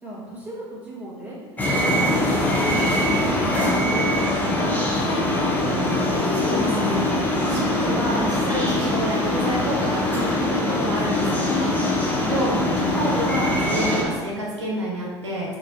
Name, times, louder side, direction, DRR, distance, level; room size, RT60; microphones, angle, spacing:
voice 1, 0.0-5.9 12.1-12.9, right 1 dB, 10° right, -7 dB, 1.1 m, -36 dB
sound 1, 1.6-14.0, left 1 dB, 10° left, 0.6 m, -22 dB
sound 2, 3.0-12.5, left 3 dB, 70° left, 0.5 m, -37 dB
voice 2, 6.3-11.9 12.3-12.5 12.8-15.6, equal, 85° right, -5 dB, 0.7 m, -29 dB
3.1 x 2.5 x 2.6 m, 1.4 s
figure-of-eight pair, 70°, 15 cm